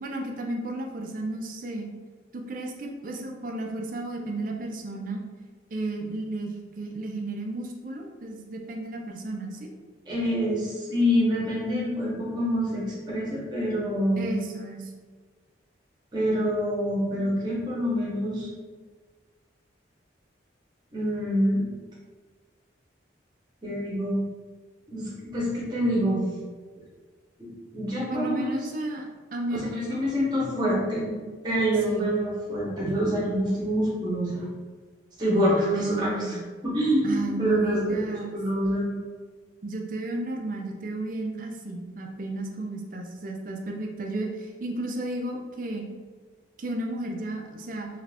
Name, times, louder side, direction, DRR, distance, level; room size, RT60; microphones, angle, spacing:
voice 1, 0.0-1.9 2.3-5.2 5.7-9.7 14.2-14.9 28.1-30.0 30.9-31.2 31.9-32.1 35.6-36.4 37.0-38.4 39.6-45.9 46.6-47.9, right 2 dB, 45° right, 1 dB, 0.4 m, -33 dB
voice 2, 10.1-14.3 16.1-18.5 20.9-21.6 23.6-24.2 24.9-26.2 27.4-28.6 29.5-31.0 31.4-34.5 35.2-36.4 36.6-38.9, equal, 25° right, -6 dB, 0.9 m, -26 dB
3.2 x 2.5 x 3.3 m, 1.4 s
head